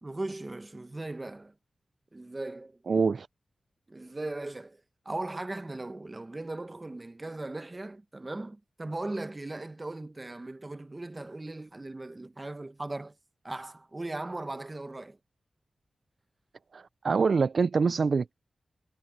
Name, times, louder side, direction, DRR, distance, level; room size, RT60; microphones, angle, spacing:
voice 1, 0.0-1.5 2.1-2.8 3.9-13.1 13.4-15.2, right 2 dB, 25° right, 1.1 m, -38 dB
voice 2, 2.9-3.3 16.7-18.3, right 5 dB, 65° right, 0.3 m, -25 dB
wide cardioid pair, 80°, 0 cm